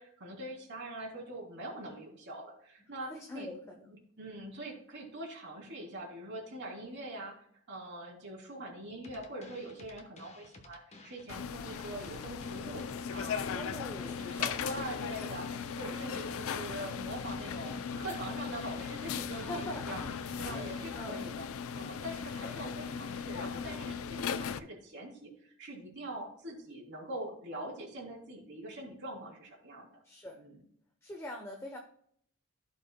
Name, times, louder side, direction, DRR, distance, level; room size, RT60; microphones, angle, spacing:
voice 1, 0.0-3.5 3.9-12.8 13.1-20.0 20.4-21.5 21.7-29.9 30.3-30.6, right 1 dB, 55° right, -2 dB, 3.2 m, -43 dB
voice 2, 3.1-3.9 13.5-14.2 15.7-15.8 19.2-20.1 20.5-21.2 22.4-22.6 30.0-30.4 31.0-31.8, left 1 dB, 10° left, 1 dB, 0.9 m, -43 dB
sound 1, 9.0-21.0, left 2 dB, 30° left, 1.1 m, -54 dB
sound 2, 11.3-24.6, left 6 dB, 65° left, 0.4 m, -38 dB
16.0 x 5.4 x 2.2 m, 0.65 s
head